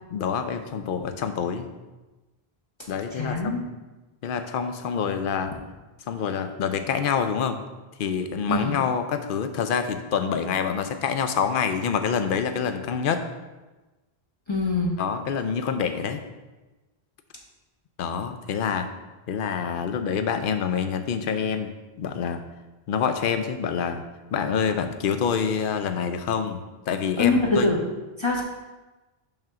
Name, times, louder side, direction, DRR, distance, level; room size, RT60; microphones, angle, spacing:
voice 1, 0.1-1.7 2.9-3.6 4.2-5.5 6.1-7.6 8.0-13.2 15.0-16.2 18.0-18.9 19.3-21.7 22.0-22.4 22.9-24.0 24.3-26.6 26.9-27.7, left 7 dB, 65° left, 8 dB, 0.7 m, -26 dB
voice 2, 3.1-3.6 8.5-8.8 14.5-15.0 27.2-27.8 28.2-28.4, left 2 dB, 30° left, -3 dB, 0.9 m, -23 dB
5.5 x 3.6 x 5.8 m, 1.2 s
omnidirectional pair, 1.0 m